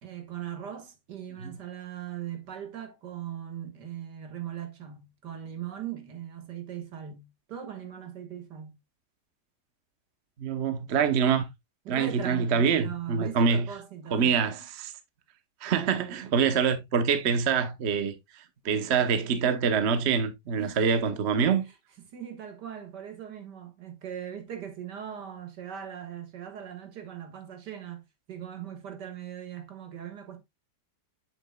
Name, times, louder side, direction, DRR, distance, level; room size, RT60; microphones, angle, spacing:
voice 1, 0.0-8.7 11.9-14.6 20.6-20.9 22.0-28.0 28.3-30.4, right 9 dB, 75° right, 2.0 m, -39 dB
voice 2, 10.4-11.5 11.9-13.7 14.1-14.5 15.6-21.6, right 6 dB, 45° right, 0.9 m, -25 dB
7.8 x 7.0 x 2.2 m
omnidirectional pair, 1.9 m